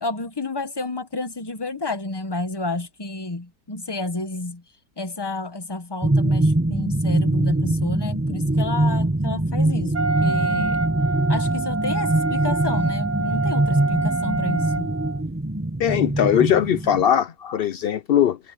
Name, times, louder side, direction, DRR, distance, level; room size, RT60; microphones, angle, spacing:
voice 1, 0.0-4.6 5.0-10.8 11.3-14.9, left 2 dB, 20° left, 1.0 m, -30 dB
sound 1, 6.0-17.0, right 1 dB, 10° right, 0.9 m, -23 dB
Wind instrument woodwind instrument, 9.9-15.2, right 3 dB, 85° right, 2.8 m, -27 dB
voice 2, 15.8-18.4, left 9 dB, 80° left, 0.5 m, -20 dB
omnidirectional pair, 1.7 m